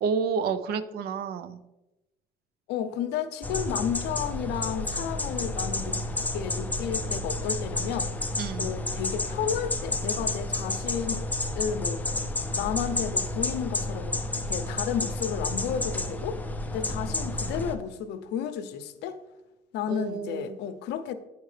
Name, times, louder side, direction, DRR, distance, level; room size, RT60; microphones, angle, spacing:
voice 1, 0.0-1.6 8.4-8.7 19.9-20.6, right 5 dB, 70° right, 0.5 m, -30 dB
voice 2, 2.7-8.1 8.6-11.2 11.6-12.0 12.6-14.2 14.5-16.4 16.7-19.2 19.7-21.1, left 8 dB, 85° left, 0.6 m, -32 dB
sound 1, 3.4-17.7, left 2 dB, 10° left, 0.4 m, -31 dB
8.8 x 4.6 x 3.2 m
cardioid pair, 110°, 17 cm